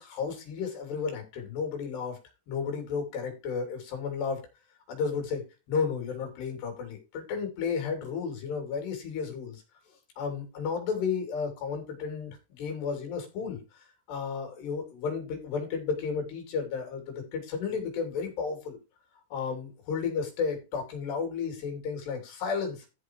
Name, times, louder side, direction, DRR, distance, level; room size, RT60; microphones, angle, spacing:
voice 1, 0.0-2.2 2.5-4.4 4.9-5.4 5.7-9.6 10.2-13.6 14.1-18.8 19.3-22.9, left 5 dB, 80° left, 3 dB, 5.3 m, -33 dB
13.5 x 4.8 x 4.7 m, 0.29 s
omnidirectional pair, 4.8 m